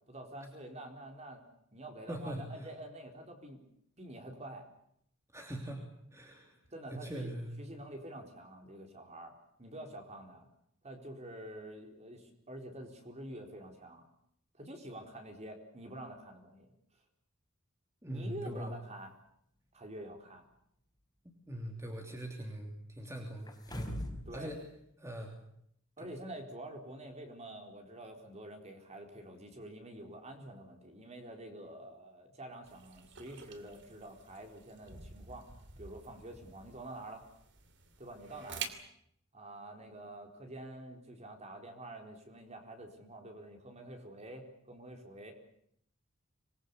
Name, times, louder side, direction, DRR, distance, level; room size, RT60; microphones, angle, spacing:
voice 1, 0.1-1.4 1.7-3.6 4.0-4.7 6.5-9.3 9.6-10.5 10.8-14.0 14.6-16.7 18.1-19.1 19.7-20.4 24.3-24.5 26.0-35.5 35.8-37.2 38.0-38.7 39.3-45.3, right 1 dB, 30° right, 4 dB, 4.3 m, -47 dB
voice 2, 2.1-2.5 5.3-6.5 6.9-7.5 18.0-18.7 21.5-23.9 24.3-24.6 25.0-25.3 26.0-26.1, right 1 dB, 15° right, 2 dB, 3.2 m, -42 dB
sound 1, 23.5-24.3 24.7-24.8, left 1 dB, 20° left, 4.5 m, -40 dB
sound 2, 32.7-38.7, right 6 dB, 60° right, 2.8 m, -48 dB
25.5 x 21.0 x 8.4 m, 0.71 s
head